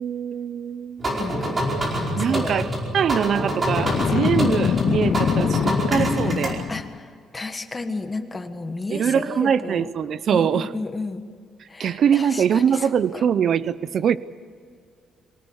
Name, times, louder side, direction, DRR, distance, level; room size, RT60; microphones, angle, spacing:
voice 1, 0.0-1.1 2.1-6.6 8.9-10.7 11.8-14.2, right 8 dB, 50° right, 16 dB, 0.6 m, -23 dB
sound 1, 1.0-6.5, equal, 25° right, 5.0 m, -26 dB
voice 2, 1.2-1.6 2.2-2.7 6.7-9.9 10.3-11.2 11.7-12.9 13.1-13.2, left 3 dB, 20° left, 7 dB, 1.5 m, -32 dB
Boom, 3.8-7.0, left 8 dB, 45° left, 0.5 m, -23 dB
24.5 x 18.5 x 8.0 m, 2.2 s
cardioid pair, 150°, 0 cm